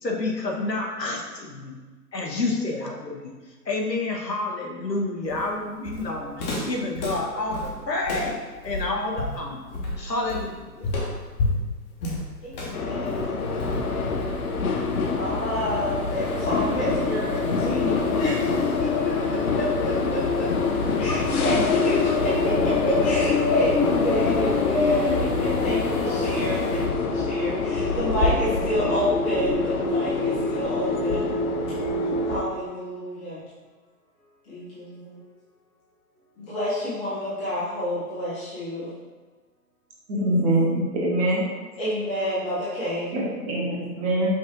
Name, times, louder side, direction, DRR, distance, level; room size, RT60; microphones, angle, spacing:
voice 1, 0.0-1.8 2.1-3.3 3.6-9.6 10.0-10.9 20.2-20.4 21.0-21.7, left 2 dB, 90° left, -1 dB, 1.1 m, -29 dB
Walk footsteps, 5.3-14.5, left 2 dB, 25° left, 0.8 m, -31 dB
voice 2, 12.4-14.4 15.1-20.5 21.0-31.3 32.2-33.4 34.4-35.2 36.4-38.9 41.8-43.1, left 1 dB, 5° left, -14 dB, 0.4 m, -29 dB
sound 1, 12.7-32.4, left 4 dB, 60° left, 0.7 m, -25 dB
sound 2, 13.4-26.9, left 1 dB, 45° left, 1.1 m, -34 dB
voice 3, 40.1-41.4 43.1-44.3, right 1 dB, 20° right, -4 dB, 0.8 m, -23 dB
5.3 x 2.5 x 3.7 m, 1.3 s
figure-of-eight pair, 125°, 48 cm